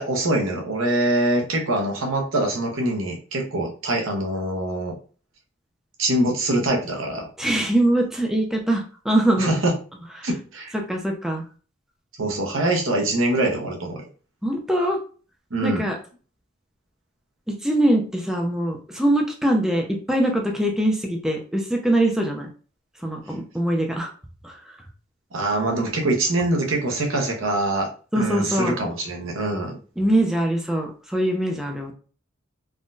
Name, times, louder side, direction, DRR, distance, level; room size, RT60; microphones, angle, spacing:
voice 1, 0.0-5.0 6.0-7.3 9.4-9.7 10.2-10.7 12.2-14.0 15.5-15.8 25.3-27.9 28.1-29.8, right 1 dB, 75° right, 1 dB, 0.8 m, -24 dB
voice 2, 7.4-9.6 10.2-10.3 10.7-11.4 14.4-15.0 15.6-16.0 17.5-22.5 23.0-24.1 24.4-24.8 28.1-28.7 30.0-31.9, right 1 dB, ahead, 1 dB, 0.4 m, -23 dB
3.6 x 2.2 x 2.5 m, 0.39 s
head